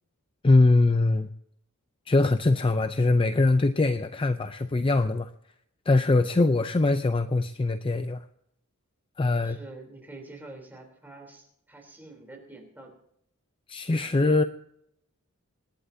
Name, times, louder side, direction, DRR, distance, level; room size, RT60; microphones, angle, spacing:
voice 1, 0.4-1.3 2.1-5.3 5.9-8.2 9.2-9.6 13.7-14.4, left 2 dB, 25° left, 9 dB, 0.4 m, -22 dB
voice 2, 9.4-12.9 14.0-14.2, right 2 dB, 10° right, 1 dB, 3.4 m, -46 dB
26.0 x 11.5 x 2.7 m, 0.74 s
head